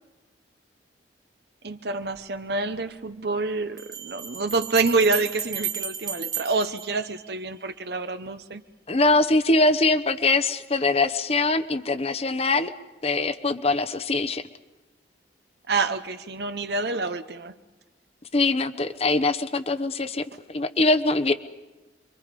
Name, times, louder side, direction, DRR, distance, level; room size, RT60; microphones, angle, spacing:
voice 1, 1.6-8.6 15.7-17.5, right 3 dB, 60° right, 0.9 m, -27 dB
Bell, 2.1-2.2 3.8-7.7, right 8 dB, 20° right, 1.3 m, -34 dB
voice 2, 8.9-12.7 13.0-14.4 18.3-21.3, left 2 dB, 35° left, 0.9 m, -23 dB
28.0 x 24.0 x 5.3 m
head